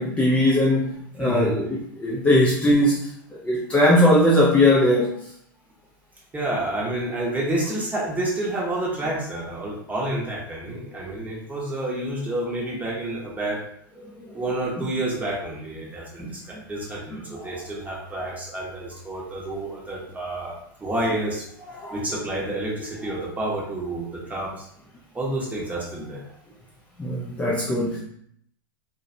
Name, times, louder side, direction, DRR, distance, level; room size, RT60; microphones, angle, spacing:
voice 1, 0.0-3.1 3.4-5.2 14.3-14.4 14.8-14.9 16.2-16.3 16.5-16.6 17.1-17.5 21.8-22.0 27.0-28.0, left 1 dB, 10° left, -4 dB, 0.4 m, -20 dB
voice 2, 1.2-1.5 6.3-13.6 14.3-21.5 21.9-24.7 25.1-26.2, right 1 dB, 10° right, -3 dB, 0.8 m, -29 dB
2.5 x 2.1 x 2.6 m, 0.67 s
hypercardioid pair, 100°, 12 cm